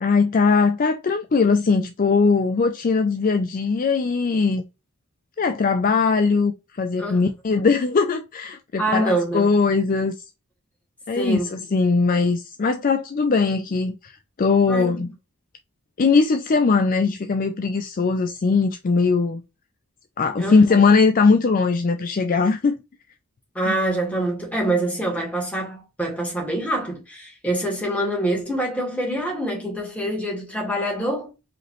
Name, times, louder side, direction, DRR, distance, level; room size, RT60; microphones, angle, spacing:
voice 1, 0.0-4.6 5.4-6.5 6.8-10.1 11.1-14.1 14.4-15.1 16.0-19.4 20.2-22.8, left 4 dB, 40° left, 0.4 m, -20 dB
voice 2, 8.8-9.4 11.1-11.6 14.7-15.1 20.4-20.8 23.5-31.3, right 1 dB, 5° left, 1.9 m, -25 dB
5.0 x 3.0 x 3.1 m
head